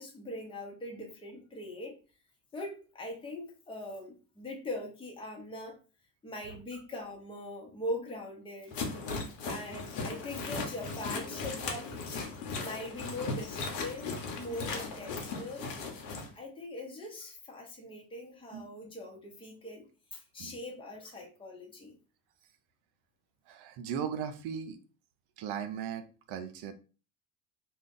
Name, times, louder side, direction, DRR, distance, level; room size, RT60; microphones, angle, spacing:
voice 1, 0.0-2.0 2.5-5.8 6.2-8.7 9.5-11.9 12.6-15.7 16.3-21.9, left 1 dB, 10° left, -1 dB, 1.0 m, -41 dB
sound 1, 8.7-16.3, left 4 dB, 65° left, 1.0 m, -37 dB
voice 2, 23.5-24.8 25.4-26.7, right 8 dB, 55° right, 9 dB, 0.6 m, -38 dB
2.5 x 2.2 x 3.5 m, 0.35 s
hypercardioid pair, 70°, 47 cm